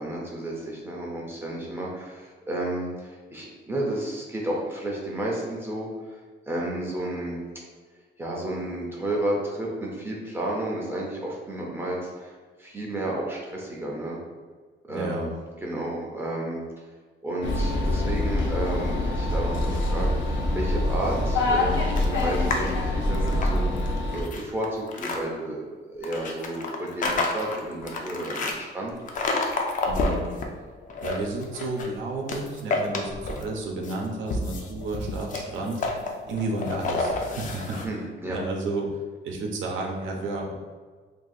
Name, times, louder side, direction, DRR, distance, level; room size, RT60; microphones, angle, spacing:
voice 1, 0.0-6.2 6.5-7.4 8.2-14.2 14.9-15.2 15.6-16.6 17.2-28.9 37.8-38.4, right 1 dB, 10° right, -3 dB, 0.5 m, -32 dB
voice 2, 14.9-15.3 29.9-30.3 31.0-35.8 36.3-37.8 38.3-40.5, right 2 dB, 90° right, 0 dB, 0.6 m, -31 dB
sound 1, 17.4-24.2, left 1 dB, 90° left, 0.6 m, -25 dB
sound 2, 22.0-22.7 23.1-25.2 26.0-28.6 29.1-30.5 30.8-31.9 32.3-33.5 33.8-37.9, left 3 dB, 45° left, 0.4 m, -29 dB
2.7 x 2.7 x 4.0 m, 1.5 s
cardioid pair, 165°, 19 cm